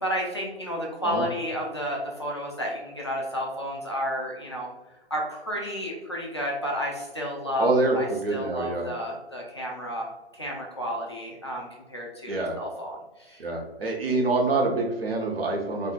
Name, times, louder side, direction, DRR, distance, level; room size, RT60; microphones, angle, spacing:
voice 1, 0.0-4.7 5.1-10.1 10.3-13.4, equal, 25° left, -3 dB, 0.4 m, -31 dB
voice 2, 7.6-8.9 12.3-12.6 13.4-15.9, right 2 dB, 60° right, -1 dB, 1.0 m, -26 dB
4.3 x 2.6 x 2.4 m, 1.1 s
figure-of-eight pair, 135°, 33 cm